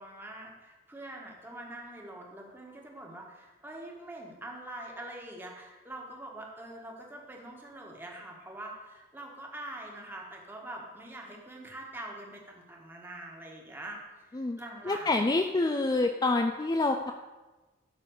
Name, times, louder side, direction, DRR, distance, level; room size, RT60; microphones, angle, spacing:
voice 1, 0.0-14.0 14.2-15.3, right 1 dB, 10° right, -1 dB, 1.5 m, -44 dB
voice 2, 14.9-17.1, left 2 dB, 20° left, 5 dB, 0.4 m, -27 dB
11.5 x 4.1 x 6.5 m, 1.2 s
head